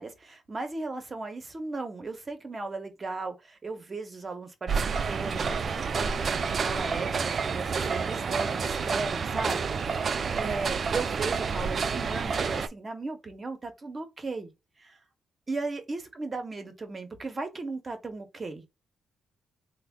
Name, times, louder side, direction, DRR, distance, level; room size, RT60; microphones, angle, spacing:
voice 1, 0.0-9.6 10.1-14.5 14.8-15.0 15.5-18.6, right 3 dB, 35° right, 0.9 m, -36 dB
sound 1, 4.7-12.7, right 5 dB, 50° right, 0.3 m, -29 dB
3.3 x 2.2 x 3.5 m
cardioid pair, 75°, 0 cm